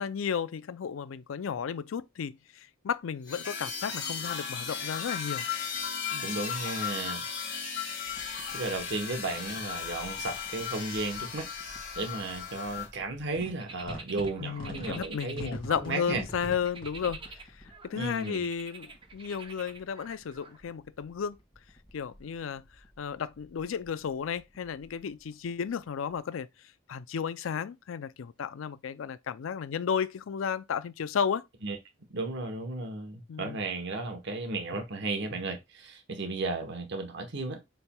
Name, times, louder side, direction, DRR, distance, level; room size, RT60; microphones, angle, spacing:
voice 1, 0.0-5.5 6.1-6.3 14.4-17.2 17.8-21.4 21.9-22.6 23.0-26.5 26.9-31.4 33.3-33.6, left 7 dB, 80° left, 0.4 m, -33 dB
sound 1, 3.3-12.9, left 7 dB, 55° left, 1.9 m, -36 dB
voice 2, 6.2-7.2 8.5-11.5 12.0-16.2 17.9-18.4 31.6-31.8 32.1-37.6, right 3 dB, 60° right, 0.9 m, -34 dB
sound 2, 8.1-26.2, equal, 25° left, 1.9 m, -49 dB
sound 3, 13.6-15.9 16.3-20.6, right 4 dB, 25° right, 0.7 m, -47 dB
7.0 x 3.4 x 2.2 m
head